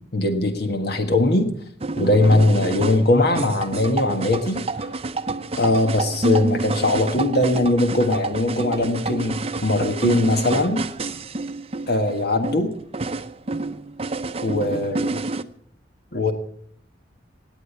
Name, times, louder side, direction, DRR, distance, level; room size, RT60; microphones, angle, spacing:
voice 1, 0.1-1.5 2.0-4.6 5.6-10.8 11.9-12.7 14.4-15.2 16.1-16.3, left 2 dB, 60° left, 6 dB, 1.5 m, -20 dB
sound 1, 1.8-15.4, right 2 dB, 35° right, 0.7 m, -28 dB
19.0 x 8.6 x 8.2 m, 0.65 s
head